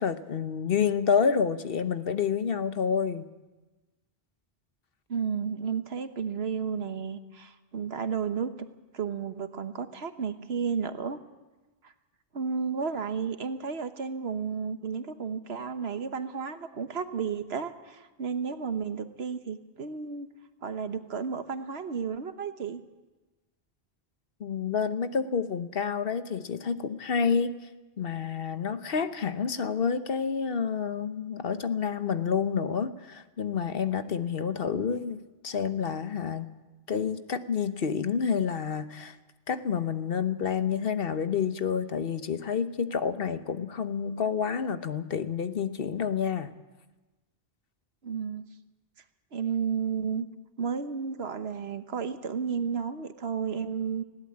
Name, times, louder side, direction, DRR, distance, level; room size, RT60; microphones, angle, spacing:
voice 1, 0.0-3.3 24.4-27.6 28.0-36.5 36.9-39.2 39.5-46.5, left 6 dB, 60° left, 11 dB, 1.1 m, -29 dB
voice 2, 5.1-8.5 8.9-11.2 12.3-20.3 20.6-22.8 48.0-48.5 49.3-50.3 50.6-54.0, right 6 dB, 75° right, 10 dB, 1.4 m, -32 dB
20.5 x 16.5 x 8.6 m, 1.2 s
omnidirectional pair, 1.1 m